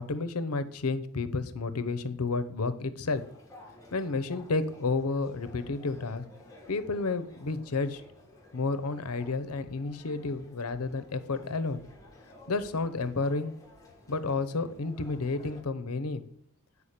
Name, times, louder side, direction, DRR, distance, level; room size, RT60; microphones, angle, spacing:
voice 1, 0.0-3.2 3.9-6.2 6.7-8.0 8.5-11.8 12.5-13.5 14.1-16.2, left 3 dB, 90° left, 12 dB, 0.8 m, -31 dB
sound 1, 3.1-15.6, left 1 dB, 15° left, 1.6 m, -53 dB
8.7 x 4.9 x 6.6 m, 0.64 s
head